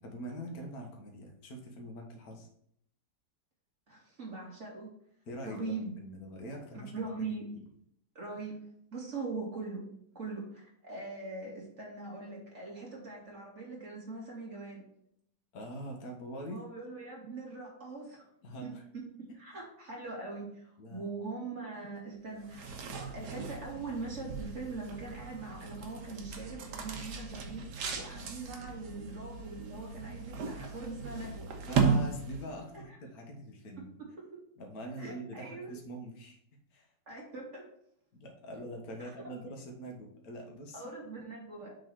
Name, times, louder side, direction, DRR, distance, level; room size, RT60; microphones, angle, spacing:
voice 1, 0.0-2.5 5.3-6.9 7.5-7.6 15.5-16.6 18.4-18.8 20.8-21.1 31.7-33.9 34.6-36.4 36.7-36.9 38.1-40.8, equal, 55° left, 1 dB, 1.8 m, -43 dB
voice 2, 3.9-4.9 5.4-5.9 6.7-7.5 8.1-8.6 8.9-14.8 16.5-18.3 18.6-22.6 22.9-31.5 32.7-33.0 34.3-34.4 35.0-35.7 37.1-37.7 39.0-39.1 40.7-41.7, right 3 dB, 40° right, -3 dB, 2.8 m, -42 dB
sound 1, 22.4-32.7, right 5 dB, 70° right, 1.6 m, -36 dB
6.6 x 3.9 x 6.2 m, 0.70 s
omnidirectional pair, 1.9 m